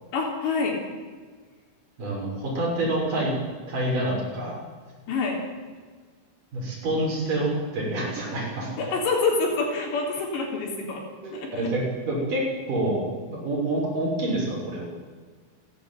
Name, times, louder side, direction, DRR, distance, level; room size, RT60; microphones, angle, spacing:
voice 1, 0.1-0.8 5.1-5.4 8.8-11.0 11.3-11.7, left 4 dB, 65° left, 1 dB, 5.7 m, -26 dB
voice 2, 2.0-3.3 3.7-4.6 6.5-8.9 11.2-14.9, right 1 dB, 45° right, -3 dB, 7.7 m, -27 dB
29.0 x 11.5 x 9.4 m, 1.5 s
omnidirectional pair, 5.5 m